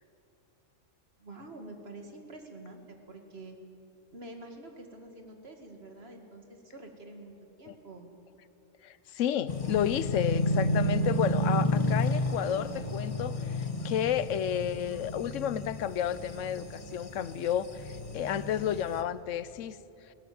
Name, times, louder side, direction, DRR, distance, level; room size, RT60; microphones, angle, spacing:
voice 1, 1.2-3.6 4.1-7.3 7.6-8.1, right 2 dB, 55° right, 4 dB, 2.2 m, -47 dB
voice 2, 8.8-19.8, left 10 dB, 80° left, 16 dB, 1.0 m, -31 dB
sound 1, 9.5-19.0, left 1 dB, 30° left, 1.2 m, -31 dB
21.0 x 16.5 x 7.8 m, 2.7 s
omnidirectional pair, 1.3 m